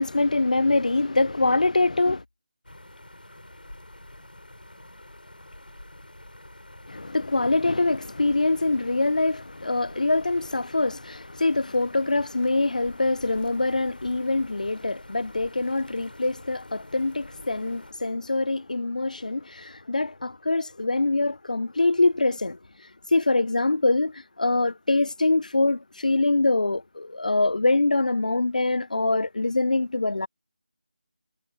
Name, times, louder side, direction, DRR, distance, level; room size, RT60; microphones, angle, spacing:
voice 1, 0.0-2.2 6.9-22.6 23.1-30.3, left 2 dB, 55° left, 0.6 m, -24 dB
sound 1, 2.6-17.9, left 1 dB, 75° left, 4.9 m, -47 dB
figure-of-eight pair, 165°, 5 cm